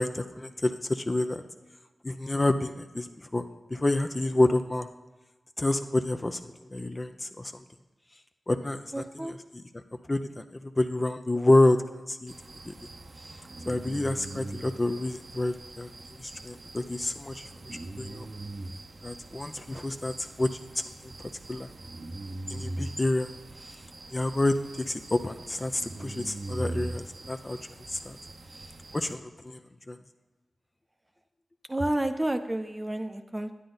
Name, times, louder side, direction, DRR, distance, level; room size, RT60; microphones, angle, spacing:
voice 1, 0.0-1.4 2.0-4.9 5.6-7.6 8.5-9.8 10.1-10.4 10.8-11.8 12.1-12.3 12.6-12.9 13.7-15.9 16.2-18.3 19.0-20.5 21.5-21.7 22.5-23.3 23.7-23.8 24.1-27.6 27.9-28.2 28.9-29.6 29.9-30.0, left 2 dB, 30° left, 7 dB, 0.6 m, -28 dB
voice 2, 8.9-9.4 31.7-33.5, right 1 dB, 20° right, 8 dB, 0.7 m, -30 dB
sound 1, 12.3-29.1, right 2 dB, 55° right, 0.7 m, -42 dB
9.8 x 9.0 x 4.0 m, 1.2 s
cardioid pair, 55°, 0 cm